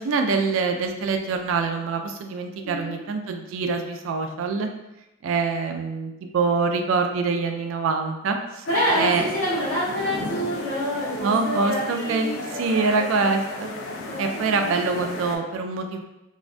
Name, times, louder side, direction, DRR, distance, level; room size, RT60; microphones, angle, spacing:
voice 1, 0.0-4.7 5.2-8.6 8.9-9.2 11.2-13.7 14.2-16.0, right 4 dB, 75° right, 5 dB, 0.3 m, -25 dB
voice 2, 2.6-3.0 8.7-13.3 14.1-14.9, equal, 60° left, -11 dB, 0.8 m, -28 dB
sound 1, 8.7-15.4, left 2 dB, 80° left, 0.4 m, -34 dB
2.5 x 2.2 x 2.4 m, 0.93 s
head